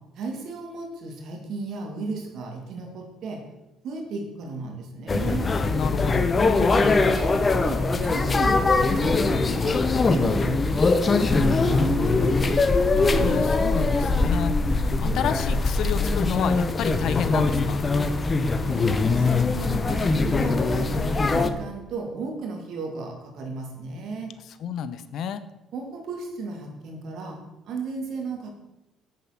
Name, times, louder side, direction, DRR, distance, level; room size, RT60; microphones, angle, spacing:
voice 1, 0.2-3.4 3.8-5.5 6.6-9.8 10.1-12.3 18.6-24.3 25.7-27.4 27.7-28.5, right 3 dB, 65° right, 2 dB, 2.4 m, -35 dB
sound 1, 5.1-21.5, left 3 dB, 30° left, 0.8 m, -22 dB
voice 2, 5.7-6.3 12.9-17.9 24.6-25.4, left 7 dB, 65° left, 13 dB, 0.7 m, -30 dB
7.7 x 7.4 x 5.8 m, 0.95 s
cardioid pair, 90°, 0 cm